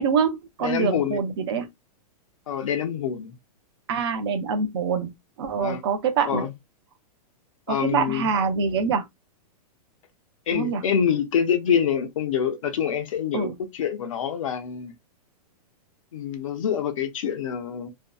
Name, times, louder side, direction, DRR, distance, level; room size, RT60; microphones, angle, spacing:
voice 1, 0.0-1.7 3.9-5.1 5.4-6.4 7.7-9.0 10.5-10.8 13.3-13.6, right 6 dB, 40° right, 0.5 m, -25 dB
voice 2, 0.6-1.2 2.5-3.3 5.6-5.8 6.2-6.5 7.7-8.3 10.5-14.9 16.1-17.9, left 8 dB, 55° left, 0.5 m, -26 dB
2.6 x 2.1 x 2.2 m
hypercardioid pair, 175°, 20 cm